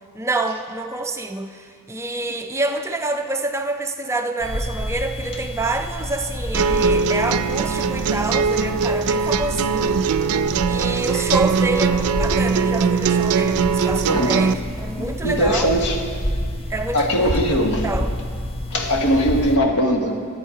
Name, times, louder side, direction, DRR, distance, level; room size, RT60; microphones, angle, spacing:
voice 1, 0.1-10.0 10.7-15.7 16.7-17.4 17.8-18.1, right 2 dB, 10° right, 5 dB, 0.4 m, -27 dB
sound 1, 4.4-19.6, equal, 25° left, 0.6 m, -29 dB
sound 2, 6.5-14.5, right 6 dB, 80° right, 0.4 m, -21 dB
voice 2, 14.1-14.4 14.9-16.0 16.9-17.8 18.7-20.2, equal, 80° left, 2 dB, 1.3 m, -20 dB
13.0 x 9.0 x 4.8 m, 2.1 s
head